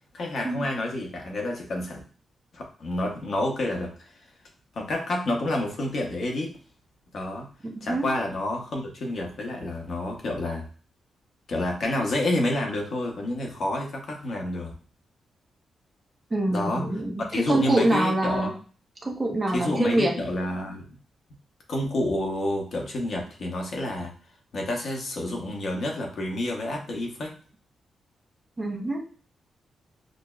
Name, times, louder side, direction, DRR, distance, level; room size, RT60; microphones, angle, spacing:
voice 1, 0.1-2.0 2.5-4.1 4.7-6.5 7.1-7.5 7.8-10.7 11.5-14.7 16.5-16.9 17.2-18.5 19.5-20.8 21.7-24.1 24.5-27.3, left 1 dB, 50° left, 1 dB, 0.8 m, -29 dB
voice 2, 7.8-8.1 16.3-18.5 19.0-20.1 28.6-29.0, right 1 dB, 20° right, 1 dB, 0.6 m, -25 dB
6.1 x 2.1 x 2.3 m, 0.39 s
wide cardioid pair, 170°, 0 cm